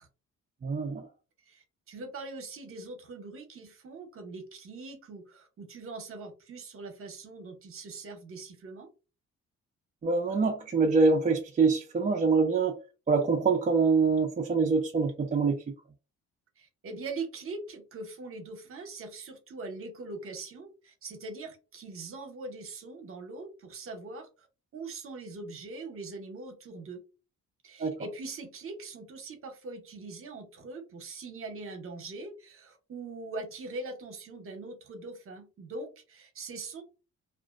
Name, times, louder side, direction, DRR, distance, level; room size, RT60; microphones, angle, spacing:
voice 1, 0.6-1.0 10.0-12.7 13.1-15.6 27.8-28.0, right 4 dB, 25° right, 0.4 m, -25 dB
voice 2, 1.5-8.9 16.6-24.5 24.7-27.0 27.6-36.8, right 3 dB, 45° right, 0.8 m, -42 dB
2.4 x 2.1 x 2.4 m
cardioid pair, 115°, 30 cm